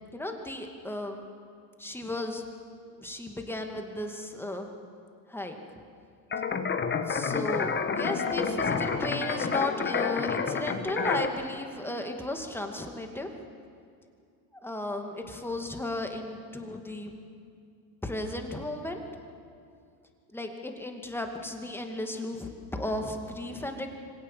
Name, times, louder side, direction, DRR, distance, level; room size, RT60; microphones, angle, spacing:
voice 1, 0.1-1.2 1.8-2.4 3.0-4.7 5.3-5.6 7.1-13.3 14.6-17.1 18.0-19.0 20.3-23.9, left 1 dB, 5° left, 3 dB, 2.4 m, -35 dB
sound 1, 6.3-11.3, left 5 dB, 25° left, 1.5 m, -29 dB
25.0 x 17.5 x 7.6 m, 2.3 s
supercardioid pair, 105°, 45 cm